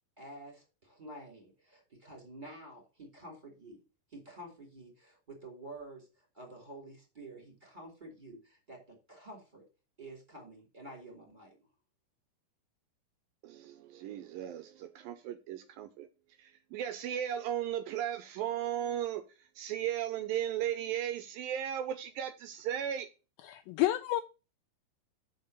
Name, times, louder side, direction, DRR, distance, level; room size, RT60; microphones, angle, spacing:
voice 1, 0.2-3.8 4.1-9.6 10.0-11.7, right 1 dB, 15° right, 2.5 m, -49 dB
voice 2, 13.4-16.1 16.4-23.1, right 10 dB, 80° right, 2.2 m, -36 dB
voice 3, 23.4-24.2, left 15 dB, 85° left, 2.0 m, -29 dB
5.5 x 5.3 x 6.6 m
omnidirectional pair, 4.5 m